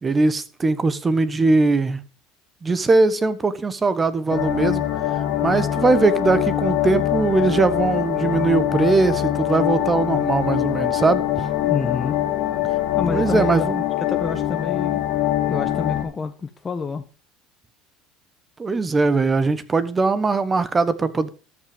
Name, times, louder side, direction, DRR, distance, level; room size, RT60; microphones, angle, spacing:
voice 1, 0.0-2.0 2.6-4.8 5.4-11.2 13.1-13.8 18.6-21.3, right 3 dB, 25° right, 1.2 m, -20 dB
sound 1, 4.3-16.0, left 13 dB, 65° left, 2.3 m, -23 dB
voice 2, 11.6-12.2 12.9-13.5 14.1-15.0 15.5-17.0, left 5 dB, 25° left, 1.1 m, -28 dB
13.5 x 6.0 x 5.2 m
supercardioid pair, 95°, 0 cm